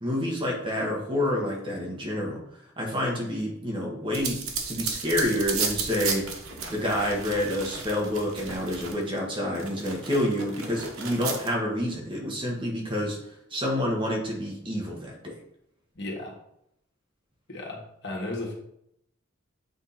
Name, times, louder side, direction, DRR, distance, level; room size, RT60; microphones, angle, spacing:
voice 1, 0.0-2.4 2.8-6.3 6.7-13.2 13.5-15.3, left 1 dB, 25° right, -2 dB, 1.5 m, -28 dB
sound 1, 4.1-9.2 9.6-11.5, right 5 dB, 90° right, 1.1 m, -34 dB
voice 2, 15.9-16.4 17.5-18.5, left 2 dB, 60° left, -2 dB, 1.8 m, -35 dB
8.0 x 3.7 x 4.2 m, 0.75 s
head